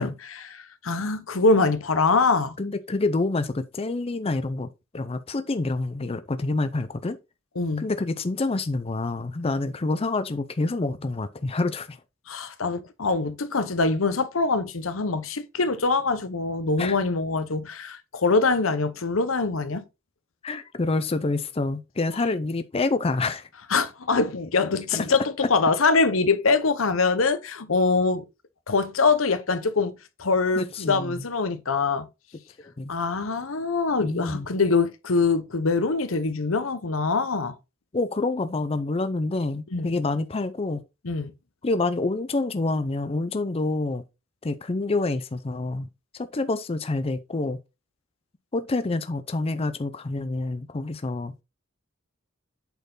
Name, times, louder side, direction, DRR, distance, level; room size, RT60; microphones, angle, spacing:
voice 1, 0.0-2.6 7.6-7.9 12.3-19.8 23.7-28.2 28.7-29.9 30.2-32.1 32.9-37.6 39.7-39.9 41.0-41.3, left 4 dB, 80° left, 0.9 m, -24 dB
voice 2, 2.6-4.7 4.9-7.2 7.8-12.0 16.8-17.0 20.4-23.5 30.6-31.1 32.8-32.9 34.0-34.5 37.9-40.8 41.6-44.0 44.4-45.9 46.1-47.6 48.5-51.3, left 2 dB, 30° left, 0.5 m, -27 dB
8.1 x 4.4 x 3.9 m
head